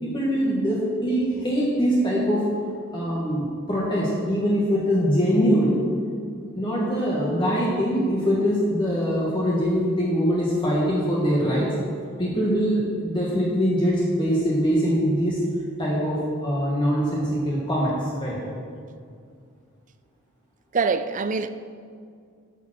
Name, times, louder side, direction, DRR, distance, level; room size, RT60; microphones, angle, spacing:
voice 1, 0.0-2.4 2.9-5.8 6.6-11.7 12.2-15.4 15.8-18.4, equal, 20° left, 1.7 m, -23 dB
voice 2, 20.7-21.5, right 4 dB, 35° right, 0.4 m, -24 dB
11.0 x 7.1 x 6.3 m
head